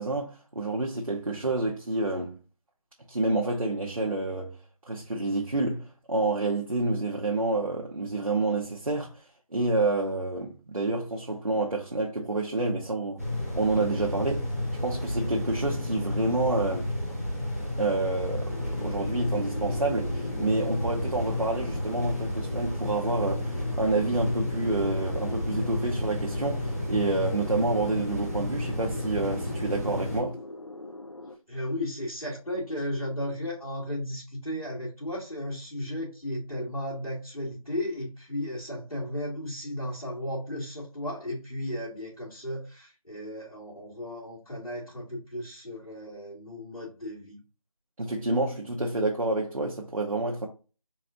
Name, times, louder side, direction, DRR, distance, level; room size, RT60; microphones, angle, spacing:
voice 1, 0.0-2.4 3.1-4.6 4.9-9.2 9.5-13.2 13.6-14.5 14.8-16.9 17.8-18.5 18.8-30.4 48.0-50.5, right 2 dB, 65° right, 0.8 m, -28 dB
sound 1, 13.2-30.2, left 1 dB, 25° right, 0.9 m, -31 dB
sound 2, 18.5-31.4, left 2 dB, 55° left, 0.5 m, -42 dB
voice 2, 31.5-47.4, left 1 dB, 80° left, 2.0 m, -35 dB
4.1 x 2.4 x 3.6 m
figure-of-eight pair, 175°, 18 cm